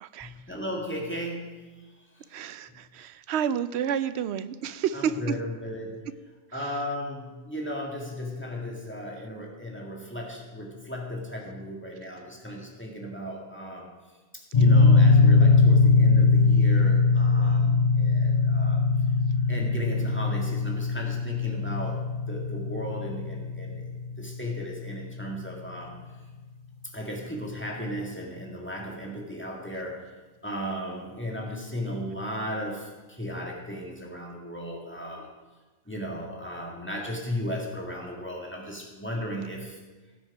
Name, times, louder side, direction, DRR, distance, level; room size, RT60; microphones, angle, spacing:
voice 1, 0.2-2.3 4.9-6.0 6.5-13.9 14.3-18.9 19.5-23.9 24.2-26.0 26.9-35.3 35.9-39.8, equal, 10° left, -2 dB, 1.9 m, -35 dB
voice 2, 2.3-2.7 3.0-5.1, right 9 dB, 65° right, 14 dB, 0.8 m, -29 dB
sound 1, 14.5-24.7, left 4 dB, 40° left, 0.7 m, -21 dB
16.5 x 6.2 x 4.9 m, 1.3 s
omnidirectional pair, 1.3 m